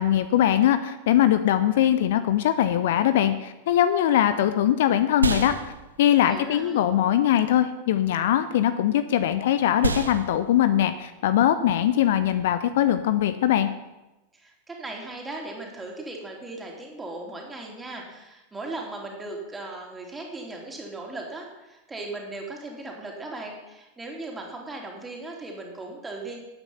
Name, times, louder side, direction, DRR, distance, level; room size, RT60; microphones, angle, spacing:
voice 1, 0.0-5.6 6.0-13.7, left 11 dB, 55° left, 12 dB, 0.6 m, -21 dB
sound 1, 3.8-13.5, right 4 dB, 75° right, 0.8 m, -34 dB
voice 2, 6.3-6.9 14.3-26.4, right 2 dB, 10° right, 0 dB, 3.1 m, -38 dB
13.0 x 8.9 x 5.7 m, 1.0 s
figure-of-eight pair, 90°, 0 cm